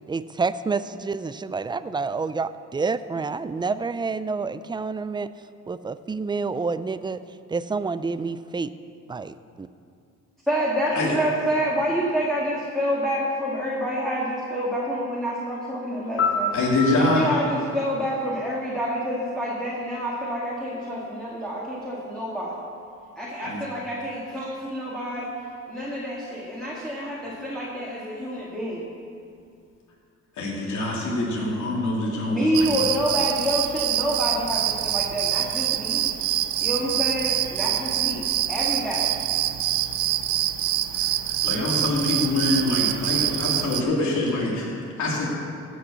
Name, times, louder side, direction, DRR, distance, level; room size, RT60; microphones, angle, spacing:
voice 1, 0.1-5.3 5.7-7.2 7.5-8.7 9.1-9.7, right 4 dB, 15° right, 13 dB, 0.4 m, -28 dB
voice 2, 10.4-16.5 17.0-22.6 23.2-25.3 25.7-28.8 32.2-36.0 36.6-39.2, equal, ahead, -6 dB, 2.3 m, -27 dB
Piano, 16.2-19.1 27.3-27.5, left 3 dB, 40° left, 2.0 m, -30 dB
voice 3, 16.5-17.3 23.4-23.6 30.4-32.6 41.4-45.3, left 2 dB, 75° left, -4 dB, 2.8 m, -25 dB
sound 1, 32.5-43.8, right 12 dB, 85° right, 0.6 m, -25 dB
16.0 x 6.4 x 6.9 m, 2.4 s
cardioid pair, 90°, 30 cm